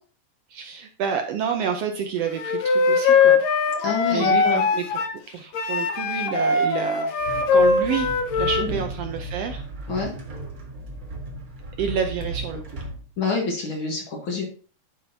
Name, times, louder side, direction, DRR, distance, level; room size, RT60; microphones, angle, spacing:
voice 1, 0.5-3.4 4.1-5.0 5.3-7.1 7.5-9.6 11.8-12.6, right 7 dB, 70° right, 5 dB, 1.6 m, -29 dB
Wind instrument woodwind instrument, 2.4-5.2 5.5-8.7, left 4 dB, 70° left, 1.9 m, -21 dB
voice 2, 3.8-4.7 8.7-8.8 9.9-10.1 13.2-14.4, left 4 dB, 50° left, 1 dB, 1.8 m, -27 dB
sound 1, 7.2-13.0, right 2 dB, 40° right, 1.5 m, -35 dB
11.5 x 5.0 x 2.7 m, 0.38 s
omnidirectional pair, 3.3 m